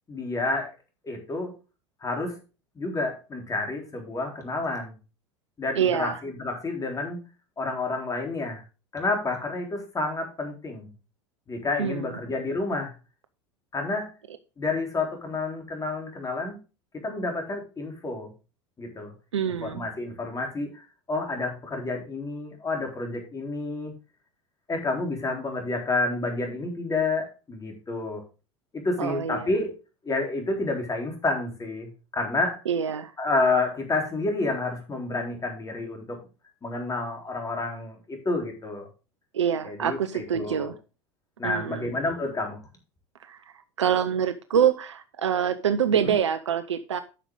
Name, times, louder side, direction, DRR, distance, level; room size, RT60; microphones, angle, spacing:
voice 1, 0.1-0.7 1.0-1.5 2.0-2.4 2.8-5.0 5.6-7.2 7.6-8.6 8.9-10.9 11.5-12.9 13.7-14.1 14.6-16.6 17.0-18.3 18.8-19.1 19.6-23.9 24.7-28.2 28.7-29.7 30.0-32.6 33.2-36.2 36.6-38.9 39.6-40.7 41.4-42.6 46.0-46.1, left 3 dB, 20° left, 2 dB, 3.8 m, -29 dB
voice 2, 5.8-6.2 11.8-12.0 19.3-19.8 29.0-29.5 32.7-33.1 39.3-40.7 41.4-41.9 43.2-43.4 43.8-47.0, right 8 dB, 85° right, 11 dB, 0.8 m, -25 dB
10.0 x 6.5 x 3.8 m, 0.31 s
hypercardioid pair, 85°, 15 cm